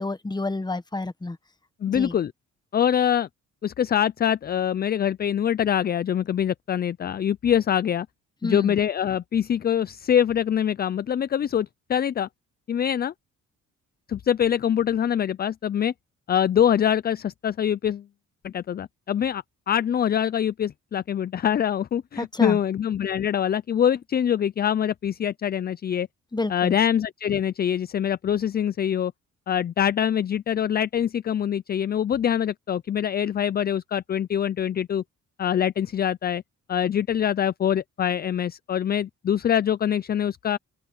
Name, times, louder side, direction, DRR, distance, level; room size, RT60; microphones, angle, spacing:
voice 1, 0.0-1.4 1.9-2.1 8.4-8.7 22.2-22.6 26.3-26.8, left 2 dB, 15° left, 1.3 m, -29 dB
voice 2, 1.8-2.3 2.7-3.3 3.6-8.1 8.4-12.3 12.7-13.1 14.1-15.9 16.3-18.0 18.4-26.1 26.5-29.1 29.5-35.0 35.4-36.4 36.7-40.6, left 9 dB, 30° left, 0.4 m, -24 dB
open air
cardioid pair, 90°, 30 cm